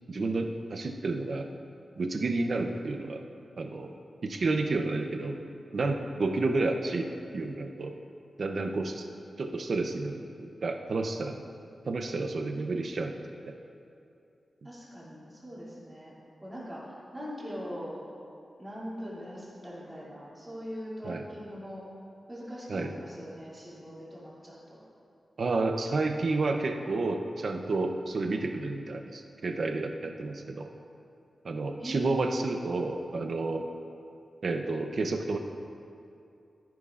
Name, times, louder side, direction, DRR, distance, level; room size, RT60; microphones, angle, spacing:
voice 1, 0.1-1.5 2.0-3.2 3.6-3.9 4.2-5.4 5.7-7.1 7.3-7.9 8.4-9.0 9.4-11.4 11.9-13.5 21.0-21.2 22.7-22.9 25.4-30.7 31.4-33.6 34.4-35.4, right 3 dB, 55° right, 5 dB, 0.6 m, -30 dB
voice 2, 8.6-9.0 14.6-16.1 16.4-18.0 18.6-21.8 22.3-24.8 31.8-32.2, equal, 15° right, -8 dB, 2.6 m, -41 dB
14.0 x 10.5 x 2.5 m, 2.6 s
wide cardioid pair, 170°, 0 cm